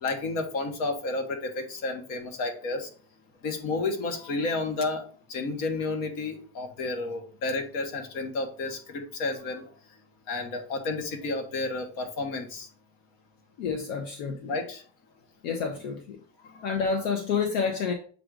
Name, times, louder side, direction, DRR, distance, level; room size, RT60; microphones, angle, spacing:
voice 1, 0.0-2.9 3.4-5.0 5.3-9.6 10.3-12.7 14.5-14.8 16.5-16.7, left 3 dB, 55° left, 4 dB, 1.6 m, -31 dB
voice 2, 13.6-14.5 15.4-16.2 16.6-17.9, left 5 dB, 70° left, 3 dB, 1.1 m, -29 dB
7.6 x 2.6 x 4.8 m, 0.44 s
supercardioid pair, 140°, 39 cm